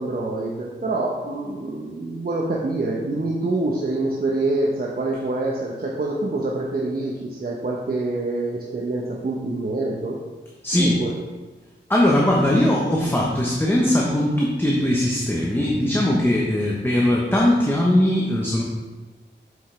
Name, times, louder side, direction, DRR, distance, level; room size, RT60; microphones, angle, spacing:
voice 1, 0.0-10.2 10.7-11.1, right 2 dB, 50° right, -4 dB, 0.9 m, -26 dB
voice 2, 10.6-11.0 11.9-18.6, left 1 dB, 10° left, -3 dB, 1.0 m, -20 dB
7.2 x 6.1 x 3.3 m, 1.3 s
wide cardioid pair, 80°, 20 cm